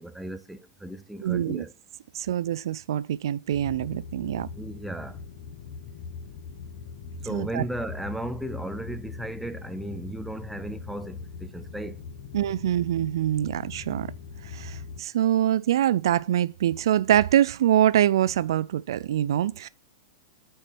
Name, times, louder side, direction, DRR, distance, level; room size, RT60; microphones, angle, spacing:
voice 1, 0.0-1.7 4.5-5.2 7.2-12.0, right 1 dB, ahead, 0.4 m, -35 dB
voice 2, 1.2-1.6 2.1-4.5 7.3-7.6 12.3-14.1 14.4-19.7, right 11 dB, 70° right, 0.4 m, -24 dB
sound 1, 3.5-15.0, left 5 dB, 50° left, 1.1 m, -41 dB
6.4 x 4.5 x 6.0 m
supercardioid pair, 160°, 2 cm